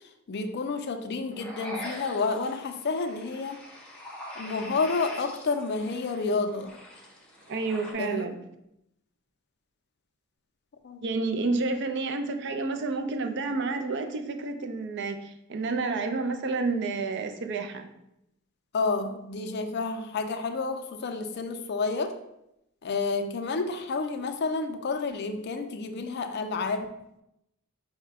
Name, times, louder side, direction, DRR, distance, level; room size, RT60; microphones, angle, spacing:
voice 1, 0.3-3.6 4.4-6.7 8.0-8.2 10.8-11.0 18.7-22.1 22.8-26.9, left 4 dB, 50° left, 7 dB, 0.4 m, -30 dB
sound 1, 1.3-7.9, left 1 dB, 5° left, 0.7 m, -43 dB
voice 2, 7.5-8.4 11.0-17.9, right 3 dB, 55° right, 6 dB, 0.4 m, -30 dB
4.8 x 2.2 x 4.6 m, 0.83 s
head